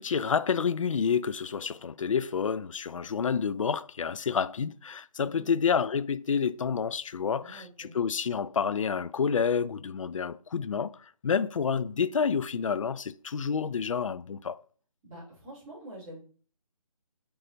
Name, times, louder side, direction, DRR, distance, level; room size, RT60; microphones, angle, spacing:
voice 1, 0.0-14.6, left 6 dB, 60° left, 0.4 m, -29 dB
voice 2, 5.2-5.5 7.3-7.9 15.0-16.2, right 1 dB, 15° right, 3.0 m, -46 dB
6.6 x 5.5 x 2.6 m
figure-of-eight pair, 165°, 19 cm